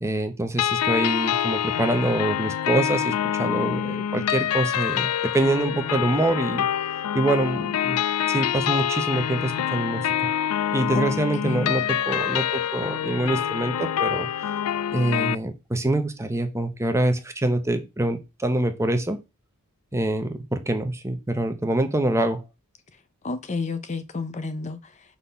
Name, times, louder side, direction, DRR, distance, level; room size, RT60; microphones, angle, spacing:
voice 1, 0.0-6.7 7.1-8.0 8.3-10.1 10.7-14.3 14.9-19.2 19.9-22.4, right 1 dB, 10° right, 0.8 m, -25 dB
sound 1, 0.6-15.4, left 10 dB, 85° left, 0.3 m, -26 dB
voice 2, 11.4-11.7 23.2-25.2, left 3 dB, 30° left, 0.6 m, -31 dB
5.8 x 4.1 x 5.6 m
head